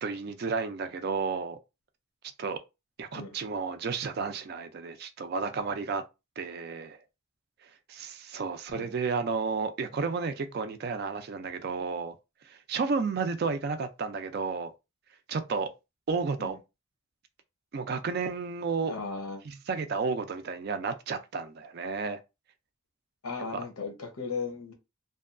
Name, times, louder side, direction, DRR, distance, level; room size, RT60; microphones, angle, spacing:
voice 1, 0.0-1.6 2.4-2.6 3.0-6.0 6.4-7.0 7.9-12.2 12.4-14.7 15.3-15.7 16.1-16.6 17.7-18.9 19.5-22.2 23.5-23.6, right 4 dB, 45° right, 0.3 m, -32 dB
voice 2, 18.9-19.4 23.2-24.7, left 4 dB, 85° left, 0.8 m, -36 dB
2.6 x 2.2 x 2.4 m
head